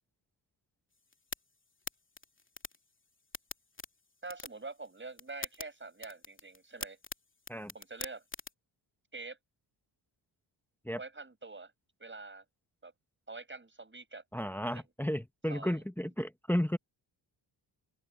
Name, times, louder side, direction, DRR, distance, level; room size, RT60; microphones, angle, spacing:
sound 1, 0.9-8.5, left 3 dB, 25° left, 2.9 m, -47 dB
voice 1, 4.2-7.0 7.7-8.2 9.1-9.4 11.0-11.7 12.0-12.4 12.8-12.9 13.3-14.2 14.7-14.9 15.5-15.8, right 3 dB, 25° right, 6.1 m, -45 dB
voice 2, 14.3-16.8, equal, 5° left, 1.0 m, -33 dB
open air
cardioid pair, 90°, 48 cm